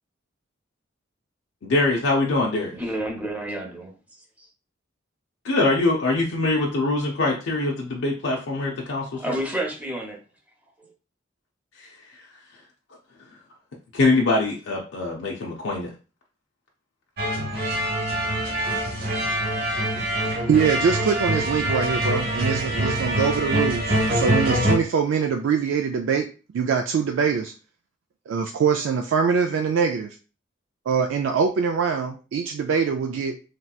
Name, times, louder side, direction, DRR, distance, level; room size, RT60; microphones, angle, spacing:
voice 1, 1.6-2.7 5.4-9.4 11.8-11.9 13.9-15.9, left 2 dB, 75° left, -1 dB, 0.5 m, -23 dB
voice 2, 2.7-3.9 9.0-10.2, right 1 dB, 10° right, 1 dB, 0.7 m, -30 dB
sound 1, 17.2-24.7, right 1 dB, 55° right, 0.9 m, -24 dB
voice 3, 20.2-26.3 26.5-27.5 28.3-30.1 30.9-33.4, right 6 dB, 80° right, 4 dB, 0.3 m, -23 dB
3.2 x 2.8 x 2.3 m, 0.35 s
head